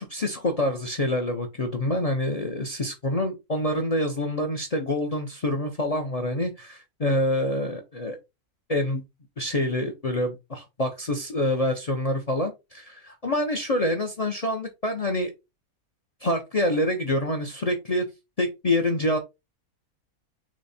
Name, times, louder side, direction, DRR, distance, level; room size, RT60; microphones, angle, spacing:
voice 1, 0.0-8.2 8.7-9.0 9.4-15.3 16.2-18.1 18.4-19.2, left 1 dB, 45° left, 0.4 m, -26 dB
6.0 x 2.1 x 4.1 m
omnidirectional pair, 1.6 m